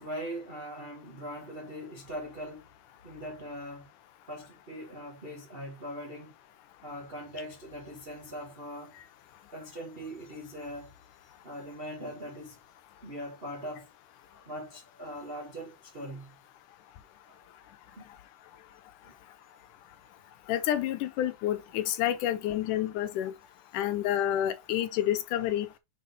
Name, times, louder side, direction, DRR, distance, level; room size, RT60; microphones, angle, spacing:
voice 1, 0.0-2.6 3.0-3.9 4.3-6.3 6.8-8.9 9.5-10.9 11.4-12.6 13.0-13.9 14.3-16.4 17.3-17.4 17.9-18.1 19.0-19.1, equal, 55° right, 0.6 m, -41 dB
voice 2, 20.5-23.3 23.7-25.7, left 12 dB, 80° left, 2.3 m, -29 dB
6.4 x 4.0 x 4.1 m
omnidirectional pair, 3.7 m